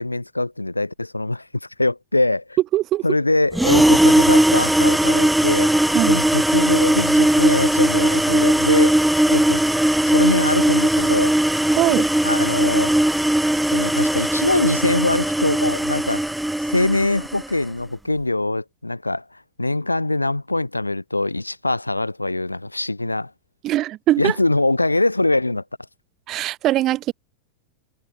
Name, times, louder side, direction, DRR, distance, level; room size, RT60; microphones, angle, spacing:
voice 1, 0.0-2.6 3.0-9.0 9.3-9.7 10.0-11.4 12.2-13.0 13.7-16.2 16.6-23.3 24.2-25.6, left 2 dB, 85° left, 1.3 m, -23 dB
voice 2, 2.7-3.0 5.9-6.2 11.7-12.1 23.6-24.3 26.3-27.1, right 14 dB, 35° right, 3.2 m, -21 dB
sound 1, 3.5-17.5, right 1 dB, 5° right, 0.8 m, -18 dB
figure-of-eight pair, 90°, 0 cm